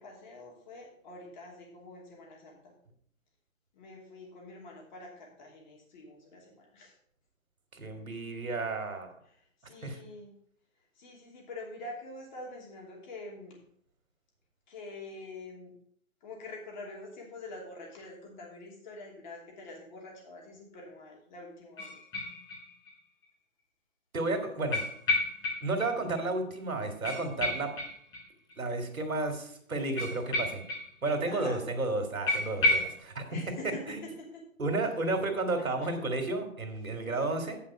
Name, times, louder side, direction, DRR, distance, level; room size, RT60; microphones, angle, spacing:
voice 1, 0.0-2.7 3.7-6.9 9.3-10.4 11.0-13.6 14.7-15.7 16.2-22.0 31.2-31.6 33.3-33.8 34.2-34.4 35.8-35.9, left 2 dB, 35° left, -1 dB, 2.9 m, -46 dB
voice 2, 7.7-9.1 9.8-10.0 24.1-24.8 25.6-27.7 28.6-30.6 31.0-33.3 33.6-34.1 34.6-37.6, right 2 dB, 90° right, 5 dB, 2.4 m, -32 dB
sound 1, 21.8-22.9 23.2-23.3 24.7-25.9 26.2-26.3 26.5-26.6 27.0-28.5 30.0-31.2 31.4-31.5 31.8-31.9 32.3-33.0, left 2 dB, 10° left, 1.2 m, -31 dB
8.8 x 5.7 x 6.0 m, 0.67 s
hypercardioid pair, 155°, 40 cm